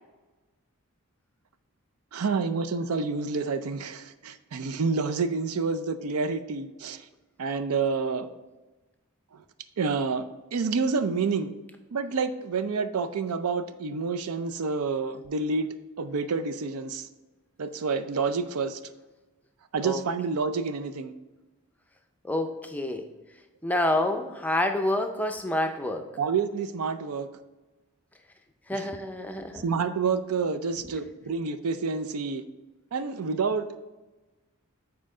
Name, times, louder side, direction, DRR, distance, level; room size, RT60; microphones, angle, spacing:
voice 1, 2.1-7.1 7.4-8.3 9.3-9.4 9.8-10.3 10.5-11.5 11.9-15.7 16.0-17.1 17.6-18.8 19.7-21.1 26.2-27.3 28.7-28.9 29.6-32.4 32.9-33.8, right 4 dB, 85° right, 11 dB, 0.5 m, -28 dB
voice 2, 22.2-23.0 23.6-26.1 28.7-29.7, left 1 dB, 5° left, 5 dB, 0.4 m, -28 dB
7.5 x 4.4 x 3.8 m, 1.1 s
head